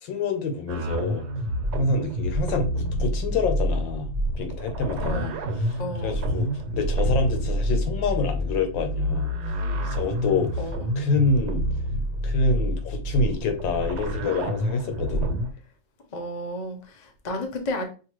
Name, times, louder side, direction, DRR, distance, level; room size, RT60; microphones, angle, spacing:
voice 1, 0.0-1.2 1.7-4.1 4.4-9.3 9.8-10.6 11.0-11.6 12.2-15.3, left 3 dB, 85° left, 1.5 m, -27 dB
sound 1, 0.7-15.5, equal, 70° right, 1.4 m, -28 dB
voice 2, 5.0-5.3 5.8-6.2 10.6-10.9 16.1-17.8, left 1 dB, 45° left, 0.5 m, -32 dB
5.5 x 2.6 x 3.0 m
omnidirectional pair, 2.0 m